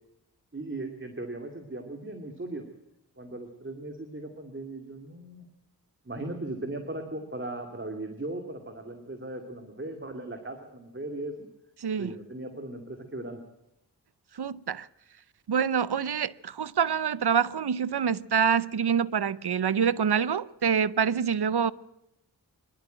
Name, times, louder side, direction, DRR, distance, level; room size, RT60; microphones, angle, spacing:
voice 1, 0.5-2.7 3.2-5.4 6.1-11.5 12.0-13.4, right 2 dB, 30° right, 2.4 m, -38 dB
voice 2, 11.8-12.1 14.3-14.9 15.5-21.7, right 7 dB, 70° right, 0.7 m, -26 dB
24.0 x 12.0 x 9.0 m
wide cardioid pair, 80°, 40 cm